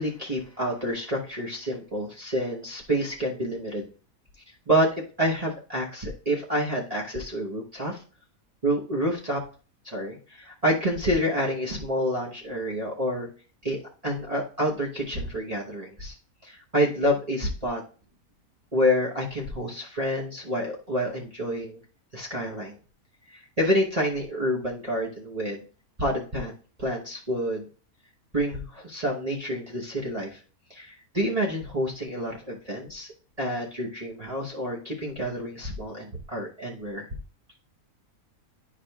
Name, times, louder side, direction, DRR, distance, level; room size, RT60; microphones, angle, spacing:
voice 1, 0.0-3.9 4.7-4.9 5.2-8.0 8.6-9.4 9.8-13.3 13.6-13.8 14.0-16.1 16.4-17.8 18.7-21.8 22.1-22.8 23.3-25.6 26.0-26.5 26.8-27.6 28.3-30.4 30.7-33.1 33.4-37.1, equal, 30° right, -5 dB, 1.0 m, -28 dB
10.5 x 4.8 x 2.3 m, 0.39 s
omnidirectional pair, 1.6 m